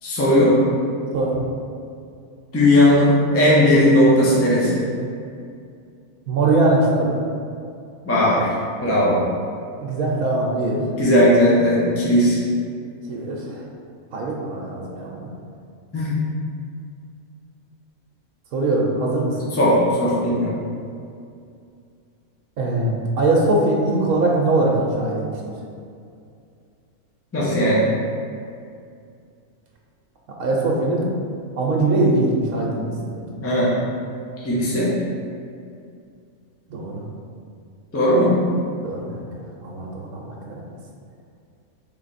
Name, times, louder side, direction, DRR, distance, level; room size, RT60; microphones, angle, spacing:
voice 1, 0.0-0.6 2.5-4.8 8.0-8.5 8.8-9.2 11.0-12.4 15.9-16.2 19.5-20.6 27.3-27.9 33.4-33.7 34.4-34.9 37.9-38.4, left 1 dB, 15° left, -7 dB, 0.6 m, -17 dB
voice 2, 6.3-7.2 9.8-10.8 13.1-13.6 14.1-15.3 18.5-19.3 22.6-25.3 30.4-31.1 31.6-33.2 36.7-37.0 38.8-39.3 39.6-40.6, right 2 dB, 75° right, -3 dB, 1.1 m, -21 dB
3.9 x 3.2 x 4.1 m, 2.4 s
omnidirectional pair, 1.6 m